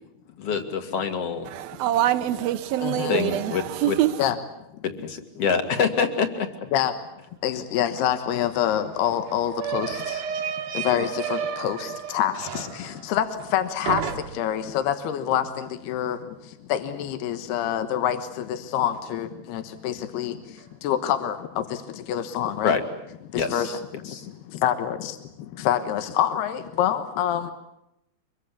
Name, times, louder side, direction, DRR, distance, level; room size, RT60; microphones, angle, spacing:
voice 1, 0.4-1.5 3.1-4.0 4.8-6.5 22.6-22.8 23.3-23.8 24.1-24.3, left 6 dB, 45° left, 2.5 m, -26 dB
voice 2, 1.5-4.3, right 12 dB, 75° right, 2.8 m, -25 dB
voice 3, 2.8-3.2 4.2-4.4 6.7-6.9 7.4-10.2 10.7-13.3 13.5-14.0 14.3-16.2 16.7-20.3 20.8-21.6 22.1-22.8 23.3-23.7 24.6-25.2 25.6-27.5, left 10 dB, 85° left, 3.3 m, -26 dB
sound 1, 8.0-8.1 8.3-13.6 13.9-14.6, right 8 dB, 60° right, 2.9 m, -32 dB
24.5 x 23.5 x 8.4 m
omnidirectional pair, 4.5 m